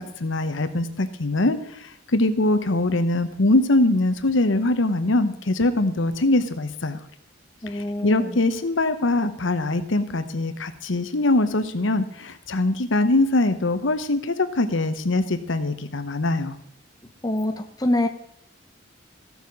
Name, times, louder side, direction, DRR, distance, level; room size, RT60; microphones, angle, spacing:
voice 1, 0.0-7.0 7.7-16.6, left 2 dB, 75° left, 10 dB, 1.0 m, -22 dB
voice 2, 7.6-8.3 17.2-18.1, left 1 dB, 20° left, 6 dB, 0.6 m, -25 dB
14.0 x 7.1 x 5.4 m, 0.74 s
head